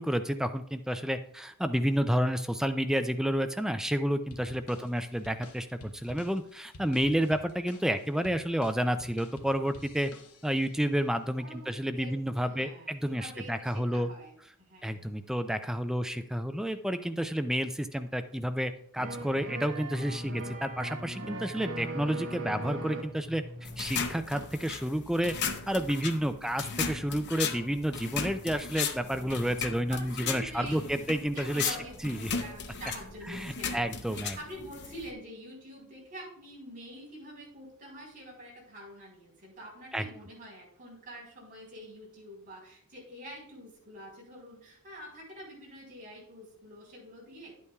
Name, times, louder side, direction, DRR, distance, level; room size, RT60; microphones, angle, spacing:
voice 1, 0.0-10.1 10.4-14.1 14.8-25.3 25.7-31.8 32.0-32.3 33.3-34.4 39.9-40.0, equal, ahead, 9 dB, 0.3 m, -30 dB
sound 1, 4.3-10.7, left 2 dB, 90° left, 1.0 m, -50 dB
voice 2, 11.4-15.1 26.1-26.5 29.9-31.1 31.3-47.5, equal, 40° right, -4 dB, 3.8 m, -46 dB
sound 2, 19.0-24.5 24.8-24.9, right 1 dB, 55° right, 1.1 m, -39 dB
sound 3, 23.6-35.1, left 6 dB, 50° left, 0.7 m, -36 dB
11.0 x 8.4 x 2.3 m, 0.66 s
head